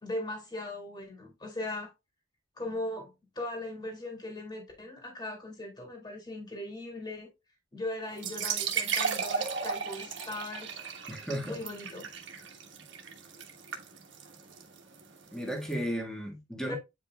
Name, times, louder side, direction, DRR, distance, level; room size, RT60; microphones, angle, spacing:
voice 1, 0.0-1.9 2.6-7.3 7.7-10.7 11.4-12.1 16.7-16.8, left 1 dB, 20° left, 2.0 m, -39 dB
sound 1, 8.1-15.7, right 6 dB, 60° right, 1.3 m, -35 dB
voice 2, 11.1-11.6 15.3-16.8, equal, 5° left, 1.5 m, -34 dB
8.8 x 4.9 x 2.3 m
head